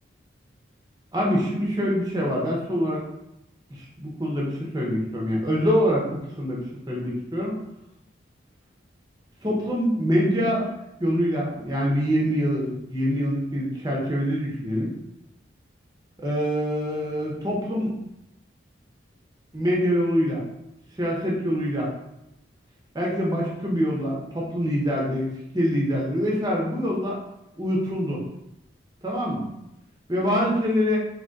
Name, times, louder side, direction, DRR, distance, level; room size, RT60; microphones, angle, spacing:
voice 1, 1.1-3.0 3.8-7.5 9.4-10.7 11.0-14.9 16.2-17.9 19.5-20.5 21.0-21.9 22.9-25.3 25.5-27.2 27.6-28.2 29.0-29.5 30.1-31.0, equal, 20° right, -3 dB, 0.8 m, -25 dB
3.8 x 2.9 x 3.9 m, 0.86 s
head